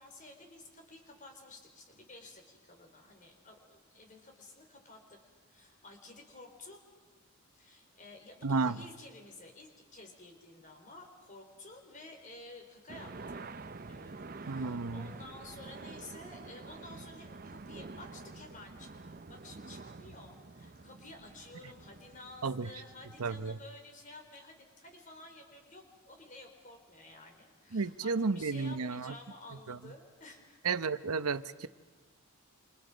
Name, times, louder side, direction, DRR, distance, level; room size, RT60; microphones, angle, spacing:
voice 1, 0.0-5.2 5.5-6.8 7.5-13.4 13.9-30.6, left 2 dB, 35° left, 3 dB, 4.5 m, -52 dB
voice 2, 8.4-8.8 14.5-15.1 22.4-22.7 23.2-23.6 27.7-29.1 29.7-29.8 30.6-31.7, right 4 dB, 85° right, 13 dB, 0.8 m, -32 dB
sound 1, 12.9-23.6, right 3 dB, 40° right, 0.7 m, -48 dB
28.5 x 27.5 x 5.2 m, 1.5 s
head